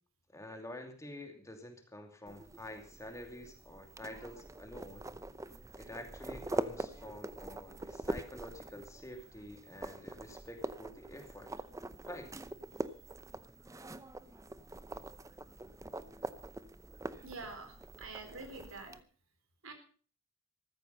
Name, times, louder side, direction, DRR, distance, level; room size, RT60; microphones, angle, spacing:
voice 1, 0.3-5.0 5.8-11.5 12.1-12.3, left 1 dB, 15° left, 4 dB, 2.7 m, -48 dB
sound 1, 2.3-19.0, right 2 dB, 15° right, 0.6 m, -44 dB
voice 2, 17.2-18.9 19.6-19.7, right 3 dB, 85° right, 7 dB, 4.0 m, -46 dB
14.5 x 14.0 x 5.4 m, 0.41 s
head